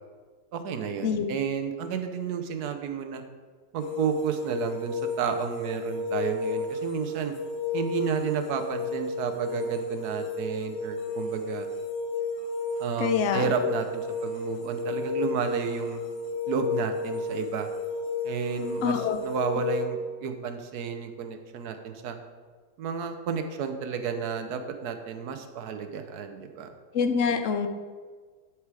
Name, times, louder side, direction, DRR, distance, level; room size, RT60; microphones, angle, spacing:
voice 1, 0.5-3.2 3.7-7.3 7.7-11.7 12.8-16.0 16.5-17.7 18.2-22.2 22.8-26.7, right 6 dB, 70° right, 7 dB, 1.3 m, -31 dB
sound 1, 3.8-19.8, left 3 dB, 90° left, 1.6 m, -32 dB
voice 2, 13.0-13.5 18.8-19.2 26.9-27.7, left 6 dB, 60° left, 8 dB, 0.9 m, -25 dB
11.5 x 4.8 x 4.8 m, 1.5 s
omnidirectional pair, 1.8 m